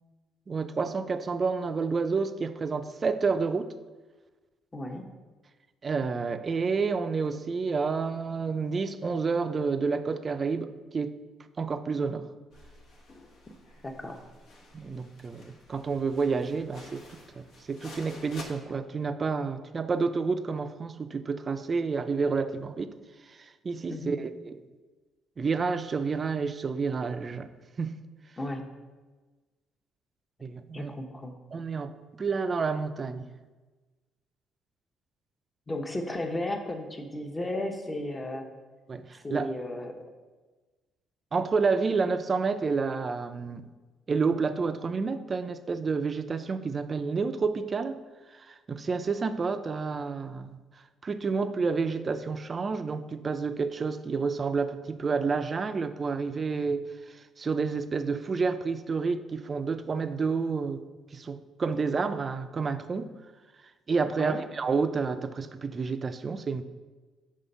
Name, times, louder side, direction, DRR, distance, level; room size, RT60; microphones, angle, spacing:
voice 1, 0.5-3.7 5.8-11.2 11.6-12.3 14.7-22.9 23.3-24.6 25.4-27.5 27.8-27.9 30.4-30.9 31.5-33.3 38.9-39.5 41.3-43.7 44.1-48.0 48.3-50.6 51.0-60.8 61.1-63.1 63.9-66.6, right 4 dB, 40° right, 11 dB, 0.4 m, -29 dB
voice 2, 4.7-5.0 13.8-14.2 23.9-24.2 28.4-28.6 30.7-31.3 35.7-38.4 39.2-39.9 64.1-64.4, left 1 dB, 25° left, 4 dB, 0.9 m, -34 dB
sound 1, 12.5-18.5, left 2 dB, 65° left, 1.1 m, -50 dB
5.6 x 3.3 x 5.3 m, 1.3 s
supercardioid pair, 65°, 0 cm